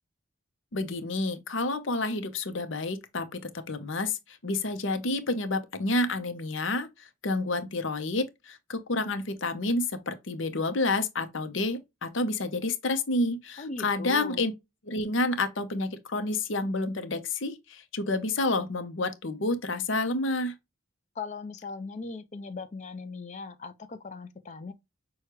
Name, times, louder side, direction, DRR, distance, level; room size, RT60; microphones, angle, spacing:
voice 1, 0.7-3.4 3.7-6.9 7.2-14.5 14.9-20.5, left 2 dB, 65° left, 0.8 m, -29 dB
voice 2, 13.6-14.4 21.2-24.7, left 4 dB, 35° left, 0.5 m, -39 dB
6.3 x 2.3 x 3.0 m
head